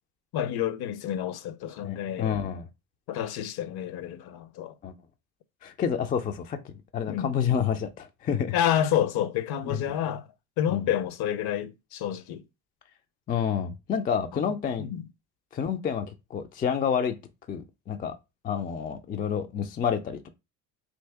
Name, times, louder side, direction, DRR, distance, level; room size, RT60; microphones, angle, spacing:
voice 1, 0.3-2.4 3.1-4.7 7.1-7.3 8.5-10.3 10.6-12.4 14.8-15.0, left 10 dB, 50° left, 0.6 m, -29 dB
voice 2, 1.8-2.6 4.8-4.9 5.6-8.5 9.6-9.8 10.7-10.9 13.3-14.9 15.5-16.1 16.3-17.1 17.5-18.2 18.4-20.3, left 7 dB, 20° left, 0.3 m, -29 dB
2.8 x 2.7 x 3.4 m
hypercardioid pair, 65°, 49 cm